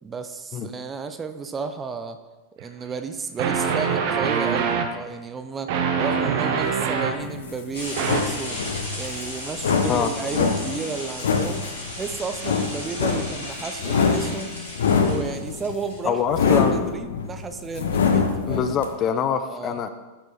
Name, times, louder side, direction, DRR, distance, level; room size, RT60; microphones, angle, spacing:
voice 1, 0.0-2.2 2.6-8.6 8.9-11.7 11.9-14.6 15.0-18.6 19.5-19.8, right 5 dB, 20° right, 9 dB, 0.6 m, -33 dB
sound 1, 2.6-2.7 3.4-4.9 5.7-7.2 8.0-8.2, right 6 dB, 50° right, 0.9 m, -24 dB
sound 2, 7.2-18.9, left 5 dB, 65° left, 0.9 m, -24 dB
sound 3, 7.7-16.0, left 1 dB, 80° left, 3.0 m, -36 dB
voice 2, 16.1-17.0 18.5-19.9, left 8 dB, 30° left, 9 dB, 0.6 m, -24 dB
13.0 x 4.6 x 4.3 m, 1.2 s
figure-of-eight pair, 90°, 0 cm